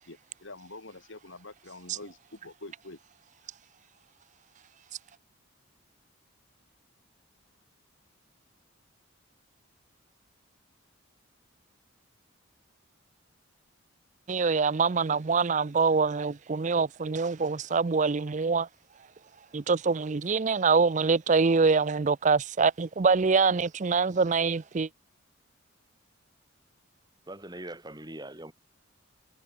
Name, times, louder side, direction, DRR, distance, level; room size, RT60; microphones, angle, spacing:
voice 1, 0.0-3.0, left 2 dB, 65° left, 2.5 m, -46 dB
voice 2, 14.3-18.7 19.5-24.9, right 4 dB, 35° right, 0.5 m, -25 dB
voice 3, 27.3-28.5, right 1 dB, 20° right, 3.5 m, -41 dB
head